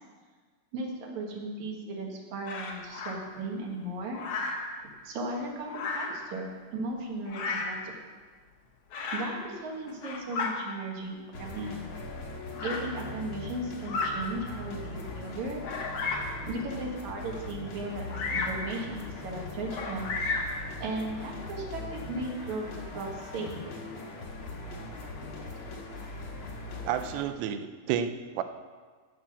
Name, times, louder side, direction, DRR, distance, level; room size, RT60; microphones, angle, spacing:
voice 1, 0.7-4.2 5.0-8.0 9.1-11.8 12.5-15.6 16.4-20.1 20.8-23.7, right 2 dB, 55° right, 0 dB, 2.5 m, -36 dB
Bird vocalization bird call bird song, 2.4-3.1 4.1-4.7 5.7-6.2 7.3-7.8 8.9-9.3 9.9-10.5 11.4-11.5 12.5-12.8 13.8-14.2 14.8-14.9 15.6-16.4 18.1-18.6 19.7-20.6, left 3 dB, 85° left, 1.3 m, -33 dB
sound 1, 11.3-27.2, left 2 dB, 55° left, 1.4 m, -40 dB
voice 2, 26.8-28.4, right 9 dB, 85° right, 10 dB, 2.9 m, -31 dB
16.0 x 6.0 x 7.0 m, 1.5 s
omnidirectional pair, 4.9 m